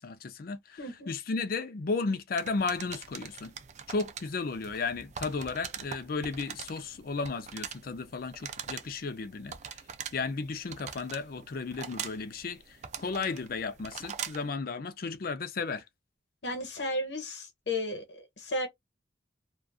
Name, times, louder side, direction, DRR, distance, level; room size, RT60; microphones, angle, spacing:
voice 1, 0.0-0.8 1.1-3.5 3.9-9.6 10.1-15.8, left 4 dB, 50° left, 0.4 m, -34 dB
voice 2, 0.8-1.1 16.4-18.7, left 1 dB, 70° left, 1.0 m, -34 dB
sound 1, 2.4-14.5, right 7 dB, 40° right, 0.3 m, -43 dB
2.3 x 2.3 x 2.4 m
head